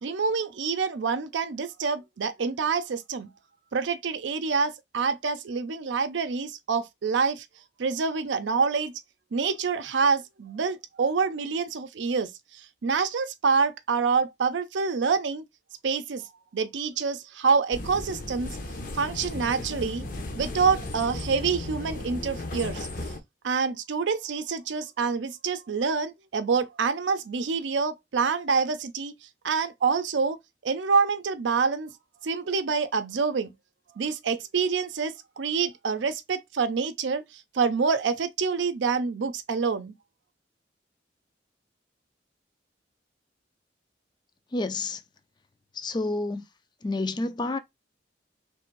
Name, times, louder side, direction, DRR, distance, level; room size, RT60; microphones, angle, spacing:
voice 1, 0.0-3.3 3.7-7.5 7.8-9.0 9.3-15.4 15.8-18.6 18.9-20.0 20.4-23.1 23.4-31.9 32.2-33.5 34.0-39.9, right 5 dB, 85° right, 0.5 m, -27 dB
sound 1, 17.7-23.2, left 2 dB, 45° left, 0.7 m, -35 dB
voice 2, 44.5-45.0 45.7-46.4 46.8-47.6, left 2 dB, 25° left, 0.4 m, -29 dB
3.2 x 2.5 x 4.5 m
head